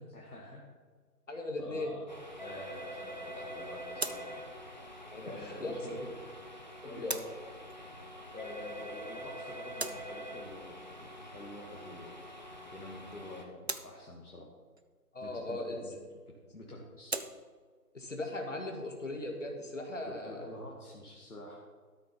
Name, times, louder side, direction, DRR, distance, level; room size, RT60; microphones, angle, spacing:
voice 1, 0.1-0.7 1.6-2.0 2.4-4.6 5.3-6.1 6.8-7.1 8.3-12.2 12.7-14.5 15.2-16.0 16.3-17.2 20.0-21.6, left 1 dB, 70° left, -2 dB, 2.0 m, -47 dB
voice 2, 1.3-1.9 5.1-5.9 6.8-7.2 15.1-15.8 17.9-20.5, left 2 dB, 50° left, 3 dB, 1.9 m, -38 dB
sound 1, 2.1-13.4, equal, 30° left, 0.9 m, -45 dB
sound 2, 3.9-20.8, right 2 dB, 45° right, 0.6 m, -47 dB
13.0 x 6.7 x 5.6 m, 1.5 s
figure-of-eight pair, 165°, 47 cm